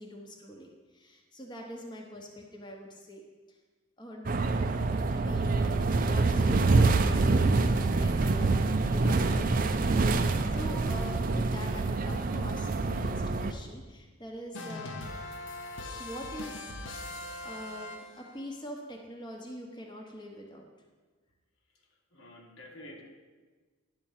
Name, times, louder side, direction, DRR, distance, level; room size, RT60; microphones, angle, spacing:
voice 1, 0.0-3.2 4.0-4.3 5.1-7.6 8.0-15.0 16.0-17.0 17.4-20.7, equal, 20° left, 0 dB, 0.9 m, -44 dB
sound 1, 4.3-13.5, right 3 dB, 40° right, 0.4 m, -26 dB
sound 2, 14.5-18.4, left 2 dB, 65° left, 0.9 m, -41 dB
voice 2, 22.1-23.0, left 1 dB, 80° left, 1 dB, 1.5 m, -48 dB
11.0 x 4.4 x 7.2 m, 1.4 s
head